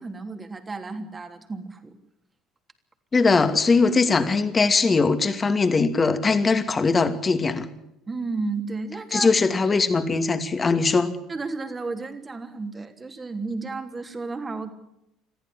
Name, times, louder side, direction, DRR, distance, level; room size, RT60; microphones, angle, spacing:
voice 1, 0.0-1.9 8.1-9.3 11.3-14.7, right 3 dB, 25° right, 6 dB, 3.3 m, -32 dB
voice 2, 3.1-7.7 9.1-11.1, left 4 dB, 30° left, 9 dB, 2.6 m, -21 dB
22.5 x 15.0 x 10.0 m, 0.83 s
hypercardioid pair, 65°, 0 cm